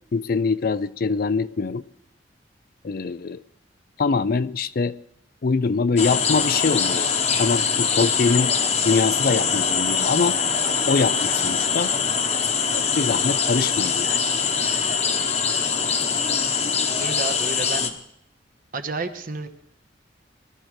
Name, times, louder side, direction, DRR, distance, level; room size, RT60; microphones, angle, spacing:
voice 1, 0.1-1.8 2.8-3.4 4.0-4.9 5.4-8.5 8.9-10.4 10.9-11.9 12.7-14.2, left 4 dB, 55° left, 15 dB, 0.4 m, -23 dB
sound 1, 6.0-17.9, left 6 dB, 35° left, 1.0 m, -23 dB
voice 2, 17.0-17.9 18.7-19.5, right 3 dB, 50° right, 7 dB, 1.2 m, -30 dB
21.0 x 13.0 x 3.3 m, 0.74 s
head